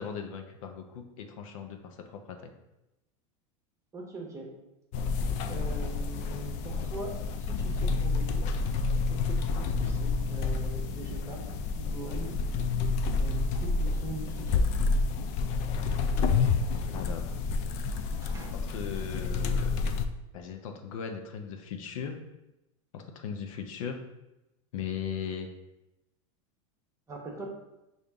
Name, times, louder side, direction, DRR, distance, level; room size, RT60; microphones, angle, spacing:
voice 1, 0.0-2.4 16.9-17.3 18.7-20.0 20.3-22.1 22.9-24.0 24.7-25.5, left 7 dB, 80° left, 4 dB, 0.7 m, -38 dB
voice 2, 3.9-4.5 5.5-8.5 9.1-11.4 11.7-12.4 13.2-14.7 16.7-16.9 18.2-18.6 27.1-27.5, right 2 dB, 15° right, 0 dB, 0.9 m, -42 dB
sound 1, 4.9-20.1, left 4 dB, 45° left, 0.4 m, -29 dB
5.2 x 2.6 x 3.5 m, 0.93 s
supercardioid pair, 130°, 17 cm